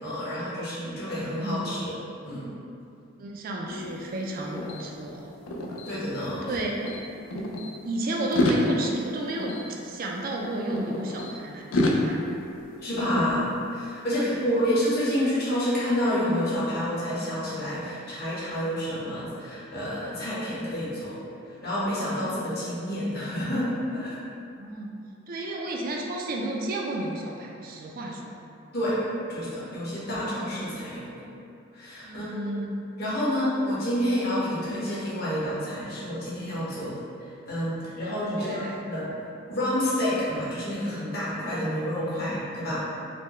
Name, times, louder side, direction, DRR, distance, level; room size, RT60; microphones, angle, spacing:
voice 1, 0.0-1.9 2.2-2.5 5.9-6.5 12.8-21.2 21.5-24.2 28.7-29.0 29.3-31.2 31.7-32.4 33.0-39.1 39.5-42.9, equal, 50° left, -9 dB, 1.0 m, -29 dB
voice 2, 1.3-1.9 3.2-5.3 6.4-7.5 7.8-12.3 14.1-14.4 24.6-24.9 25.3-28.3 32.0-32.8 36.7-36.9 38.4-38.8, right 1 dB, 45° right, -1 dB, 0.3 m, -32 dB
sound 1, 3.7-6.6 6.8-7.7 8.2-11.3 11.7-14.0, left 1 dB, 85° left, 0.4 m, -30 dB
4.3 x 2.1 x 3.0 m, 2.5 s
head